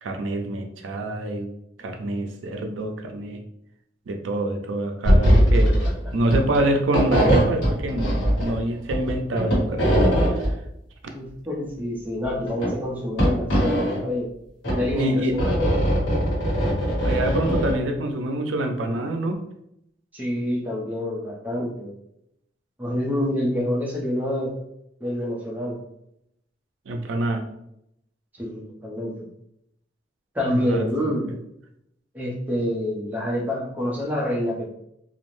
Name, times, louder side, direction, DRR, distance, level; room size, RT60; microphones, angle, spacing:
voice 1, 0.0-1.5 1.8-3.4 4.1-5.8 6.1-8.1 8.4-10.5 14.9-15.4 17.0-19.4 26.9-27.4 30.7-31.2, right 1 dB, 90° right, 4 dB, 0.4 m, -26 dB
sound 1, 5.0-5.9 6.2-6.6 6.9-8.6 8.9-10.5 12.2-12.7 13.2-14.0 14.6-17.7, equal, 75° left, 1.2 m, -20 dB
voice 2, 11.1-14.3 14.7-15.9 20.1-21.9 22.8-24.5 25.0-25.8 28.3-29.3 30.3-31.4 32.1-34.7, left 1 dB, 10° right, -4 dB, 0.5 m, -27 dB
2.4 x 2.0 x 3.0 m, 0.78 s
head